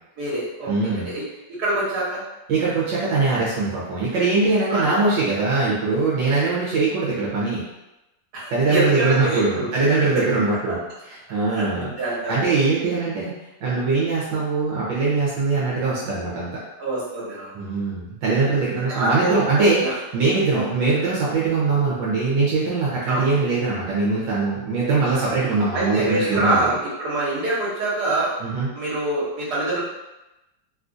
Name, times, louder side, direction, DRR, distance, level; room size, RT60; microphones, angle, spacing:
voice 1, 0.2-1.2 1.6-2.2 4.7-4.9 8.3-9.7 10.7-10.8 11.5-12.4 16.8-17.5 18.9-19.4 19.8-19.9 20.5-20.7 23.1-23.3 25.7-28.3 28.7-29.8, right 2 dB, 65° right, -8 dB, 1.7 m, -25 dB
voice 2, 0.7-1.1 2.5-7.6 8.5-10.8 11.1-11.9 12.3-13.3 13.6-16.6 17.5-26.8 28.4-28.7, right 3 dB, 85° right, -7 dB, 1.5 m, -22 dB
3.6 x 2.4 x 2.6 m, 0.96 s
omnidirectional pair, 1.9 m